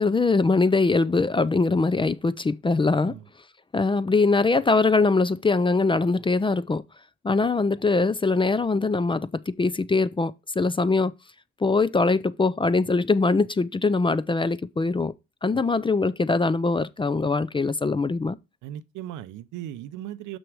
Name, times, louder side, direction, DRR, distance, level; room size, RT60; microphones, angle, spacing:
voice 1, 0.0-3.1 3.7-6.8 7.2-11.1 11.6-15.1 15.4-18.4, left 3 dB, 15° left, 0.4 m, -22 dB
voice 2, 18.6-20.4, right 12 dB, 90° right, 0.6 m, -37 dB
6.1 x 6.1 x 4.7 m
cardioid pair, 90°, 30 cm